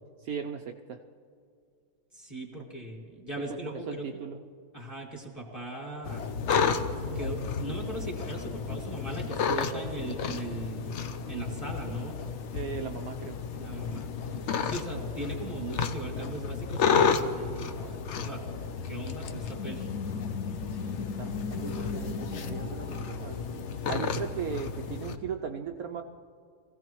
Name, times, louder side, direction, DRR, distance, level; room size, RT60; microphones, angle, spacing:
voice 1, 0.2-1.0 3.7-4.4 12.5-13.4 20.8-23.4 23.9-26.0, right 7 dB, 70° right, 5 dB, 0.9 m, -37 dB
voice 2, 2.1-4.1 4.7-6.2 7.1-11.0 11.3-12.2 13.6-14.1 14.6-18.4 18.8-19.9 23.9-24.1, right 2 dB, 20° left, -1 dB, 1.8 m, -39 dB
sound 1, 6.0-25.2, left 6 dB, 70° left, 0.6 m, -32 dB
sound 2, 19.4-23.8, left 4 dB, 50° left, 2.3 m, -38 dB
23.5 x 16.0 x 3.1 m, 2.3 s
omnidirectional pair, 2.0 m